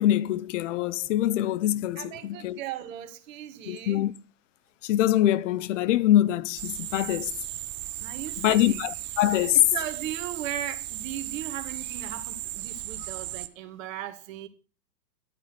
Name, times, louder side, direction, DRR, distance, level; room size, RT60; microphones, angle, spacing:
voice 1, 0.0-2.6 3.7-4.1 4.8-7.3 8.4-9.6, left 13 dB, 50° left, 0.9 m, -24 dB
voice 2, 2.0-4.1 8.0-8.8 9.5-14.5, right 10 dB, 55° right, 2.2 m, -37 dB
sound 1, 6.6-13.5, right 15 dB, 25° right, 0.7 m, -36 dB
12.0 x 9.0 x 5.9 m
hypercardioid pair, 115°, 48 cm